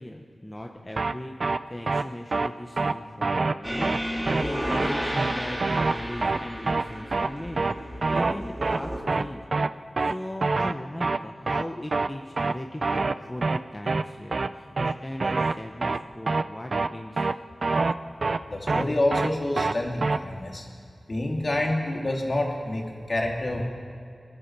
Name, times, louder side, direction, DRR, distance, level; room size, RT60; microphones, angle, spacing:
voice 1, 0.0-7.7 8.1-9.4 10.0-17.3, left 1 dB, 20° left, 2 dB, 0.9 m, -38 dB
sound 1, 1.0-1.1 1.4-1.6 1.9-2.0 2.3-2.5 2.8-2.9 3.2-3.5 3.8-4.0 4.3-4.4 4.7-4.9 5.2-5.3 5.6-5.9 6.2-6.4 6.7-6.8 7.1-7.3 7.6-7.7 8.0-8.3 8.6-8.8 9.1-9.2 9.5-9.7 10.0-10.1 10.4-10.7 11.0-11.2 11.5-11.6 11.9-12.1 12.4-12.5 12.8-13.1 13.4-13.6 13.9-14.0 14.3-14.5 14.8-14.9 15.2-15.5 15.8-16.0 16.3-16.4 16.7-16.9 17.2-17.3 17.6-17.9 18.2-18.4 18.7-18.8 19.1-19.3 19.6-19.7 20.0-20.2, right 3 dB, 65° right, 0.4 m, -25 dB
sound 2, 3.6-9.0, equal, 10° right, 3.0 m, -32 dB
voice 2, 18.5-20.7 21.1-23.7, left 1 dB, 50° left, 0 dB, 2.3 m, -27 dB
20.5 x 11.0 x 4.6 m, 2.3 s
cardioid pair, 50°, 0 cm